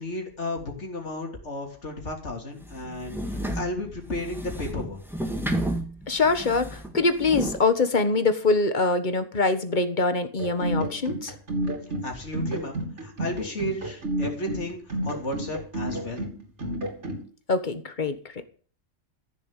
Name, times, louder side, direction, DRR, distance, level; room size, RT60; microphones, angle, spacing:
voice 1, 0.0-5.0 12.0-16.3, left 1 dB, 65° left, 2 dB, 3.5 m, -33 dB
sound 1, 2.6-7.6, right 1 dB, ahead, 1.9 m, -32 dB
voice 2, 6.1-11.3 17.5-18.1, left 3 dB, 40° left, 10 dB, 1.6 m, -24 dB
sound 2, 10.4-17.2, right 1 dB, 65° right, 3.5 m, -30 dB
14.5 x 7.2 x 9.0 m, 0.42 s
omnidirectional pair, 1.3 m